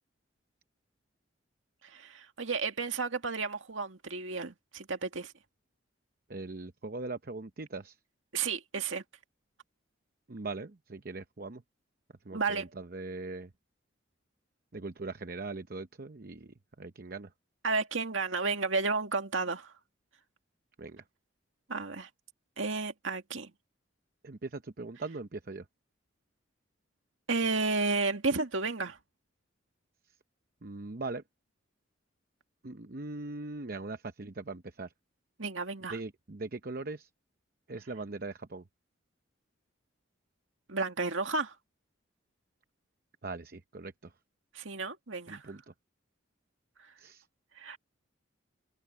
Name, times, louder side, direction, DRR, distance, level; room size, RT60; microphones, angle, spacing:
voice 1, 1.8-5.3 8.3-9.0 12.3-12.7 17.6-19.7 21.7-22.1 22.6-23.5 27.3-29.0 35.4-36.0 40.7-41.6 44.5-45.5 47.6-47.8, right 4 dB, 85° right, 2.1 m, -32 dB
voice 2, 6.3-8.0 10.3-11.6 12.2-13.5 14.7-17.3 20.8-21.0 24.2-25.7 30.6-31.2 32.6-34.9 35.9-37.1 37.7-38.6 43.2-44.1 45.3-45.7 47.0-47.2, right 3 dB, 50° right, 0.8 m, -40 dB
head